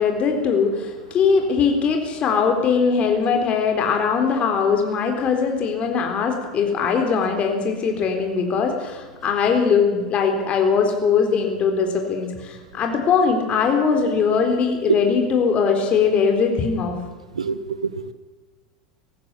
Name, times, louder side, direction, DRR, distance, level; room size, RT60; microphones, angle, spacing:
voice 1, 0.0-16.9, left 5 dB, 40° left, 4 dB, 3.9 m, -21 dB
voice 2, 17.3-18.1, right 5 dB, 90° right, 13 dB, 1.2 m, -24 dB
19.0 x 14.5 x 9.9 m, 1.3 s
hypercardioid pair, 85°, 3 cm